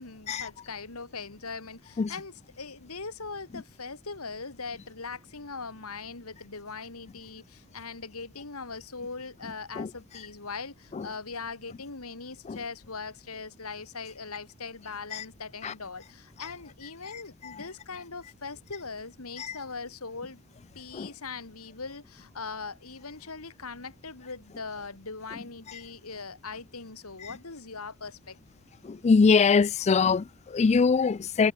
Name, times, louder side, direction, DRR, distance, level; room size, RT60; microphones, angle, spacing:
voice 1, 0.0-20.4 20.7-28.4, left 4 dB, 75° left, 2.5 m, -40 dB
voice 2, 28.8-31.5, left 5 dB, 30° left, 0.3 m, -23 dB
head